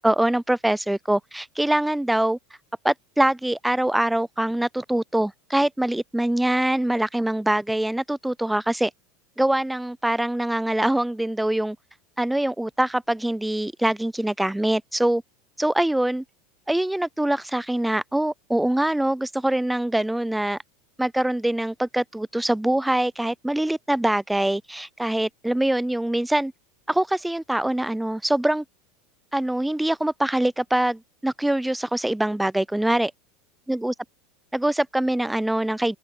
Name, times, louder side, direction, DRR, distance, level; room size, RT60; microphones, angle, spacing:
voice 1, 0.0-2.4 2.8-8.9 9.4-11.8 12.2-15.2 15.6-16.2 16.7-20.6 21.0-26.5 26.9-28.6 29.3-33.1 33.7-33.9 34.5-36.0, right 1 dB, 5° right, 0.4 m, -24 dB
open air
hypercardioid pair, 85°, 0 cm